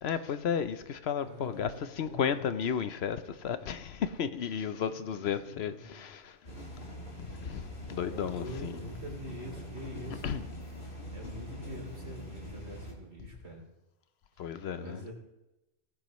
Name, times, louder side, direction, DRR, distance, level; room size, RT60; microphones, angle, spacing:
voice 1, 0.0-6.4 7.2-8.7 10.2-10.4 14.4-15.0, left 7 dB, 70° left, 0.9 m, -33 dB
voice 2, 1.2-2.4 4.7-6.1 8.0-10.3 11.1-13.6 14.4-15.1, equal, 75° right, 3.3 m, -45 dB
sound 1, 6.4-12.9, equal, 55° left, 2.6 m, -43 dB
17.5 x 15.0 x 3.1 m
omnidirectional pair, 1.1 m